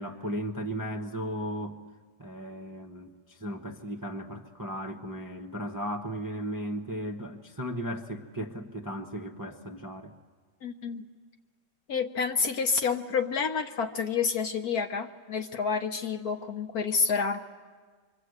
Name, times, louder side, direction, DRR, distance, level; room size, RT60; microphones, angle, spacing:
voice 1, 0.0-1.8 2.2-10.1, equal, 15° right, 3 dB, 0.7 m, -36 dB
voice 2, 10.6-11.0 11.9-17.4, left 5 dB, 55° left, 6 dB, 1.4 m, -29 dB
26.0 x 24.0 x 8.1 m, 1.5 s
omnidirectional pair, 2.1 m